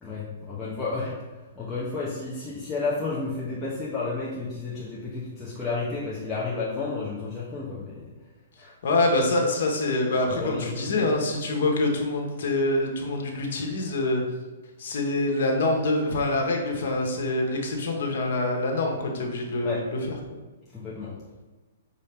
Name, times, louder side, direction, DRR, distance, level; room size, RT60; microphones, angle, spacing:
voice 1, 0.0-8.1 8.6-8.7 10.3-11.1 19.6-19.8 20.7-21.1, left 3 dB, 10° left, -9 dB, 0.8 m, -32 dB
voice 2, 8.8-14.2 14.8-20.4, left 2 dB, 60° left, 1 dB, 1.1 m, -25 dB
5.4 x 2.7 x 3.4 m, 1.2 s
hypercardioid pair, 150°, 0 cm